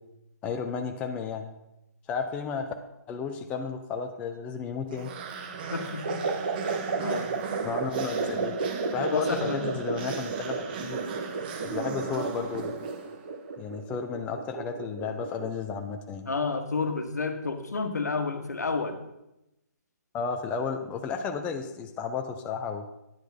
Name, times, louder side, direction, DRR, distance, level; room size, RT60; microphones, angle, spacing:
voice 1, 0.4-1.5 2.1-2.7 3.1-5.1 7.6-8.5 8.9-11.1 11.6-12.7 13.6-16.3 20.1-22.8, left 6 dB, 15° left, 5 dB, 0.5 m, -33 dB
sound 1, 4.9-13.4, right 5 dB, 35° right, 0.9 m, -37 dB
voice 2, 5.7-6.2 7.0-7.3 9.1-9.7 16.3-19.0, left 4 dB, 70° left, 6 dB, 1.4 m, -30 dB
sound 2, 6.0-15.6, right 4 dB, 55° right, 1.3 m, -33 dB
10.0 x 8.0 x 4.2 m, 0.91 s
figure-of-eight pair, 140°, 9 cm